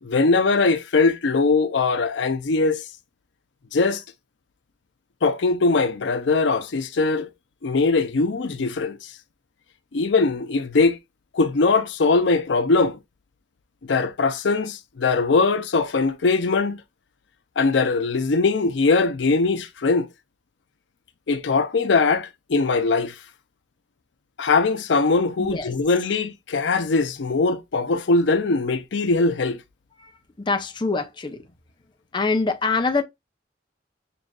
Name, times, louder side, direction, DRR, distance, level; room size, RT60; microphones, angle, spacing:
voice 1, 0.0-2.8 3.7-4.0 5.2-7.3 7.6-9.1 9.9-11.0 11.3-13.0 13.9-16.8 17.6-20.1 21.3-23.1 24.4-29.6, left 3 dB, 70° left, 0.5 m, -21 dB
voice 2, 25.4-25.7 30.0-30.1 30.4-31.4 32.1-33.0, left 3 dB, 25° left, 0.5 m, -24 dB
6.7 x 2.5 x 2.2 m
head